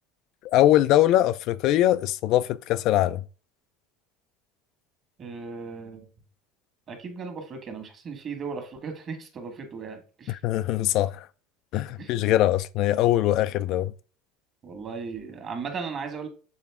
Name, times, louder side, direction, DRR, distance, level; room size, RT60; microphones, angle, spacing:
voice 1, 0.4-3.2 10.3-11.2 11.7-13.9, left 13 dB, 55° left, 0.3 m, -22 dB
voice 2, 5.2-6.1 6.9-10.4 12.0-12.1 14.6-16.3, right 5 dB, 35° right, 1.6 m, -36 dB
7.2 x 3.9 x 3.6 m
supercardioid pair, 140°, 0 cm